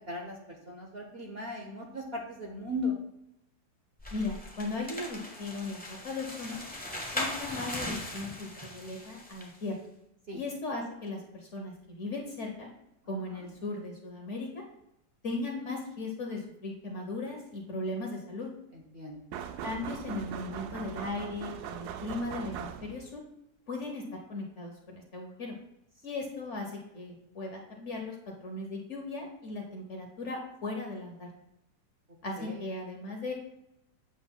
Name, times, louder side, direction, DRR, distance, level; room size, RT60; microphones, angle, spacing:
voice 1, 0.1-2.9 10.3-10.4 18.7-19.2 32.4-32.6, left 1 dB, 40° right, 0 dB, 1.1 m, -37 dB
sound 1, 4.0-9.6, left 1 dB, 5° left, 0.7 m, -39 dB
voice 2, 4.1-6.6 7.1-9.8 10.3-12.7 13.1-14.6 15.2-18.5 19.6-23.2 23.7-24.0 24.3-25.5 26.0-28.1 28.4-31.3 32.2-33.3, left 2 dB, 50° left, 0 dB, 1.2 m, -37 dB
sound 2, 19.3-23.2, right 8 dB, 75° right, 1.0 m, -40 dB
7.9 x 7.5 x 2.3 m, 0.82 s
omnidirectional pair, 1.8 m